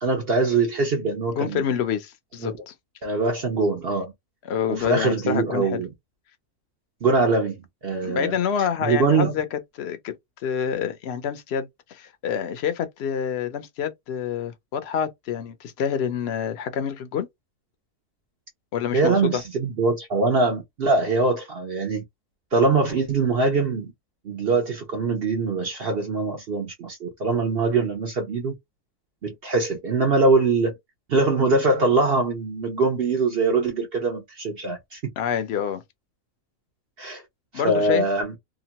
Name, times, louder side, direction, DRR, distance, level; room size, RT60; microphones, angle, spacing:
voice 1, 0.0-1.6 2.4-2.5 3.0-4.1 4.7-5.9 7.0-7.6 7.8-8.4 8.8-9.3 18.9-22.0 22.5-23.9 24.2-28.5 29.2-30.7 31.1-35.0 37.0-37.2 37.6-38.4, right 3 dB, 50° right, 0.8 m, -23 dB
voice 2, 1.3-2.7 4.5-5.8 8.0-10.1 10.4-17.3 18.7-19.4 35.2-35.8 37.5-38.0, left 8 dB, 60° left, 0.8 m, -27 dB
2.9 x 2.3 x 2.8 m
omnidirectional pair, 1.4 m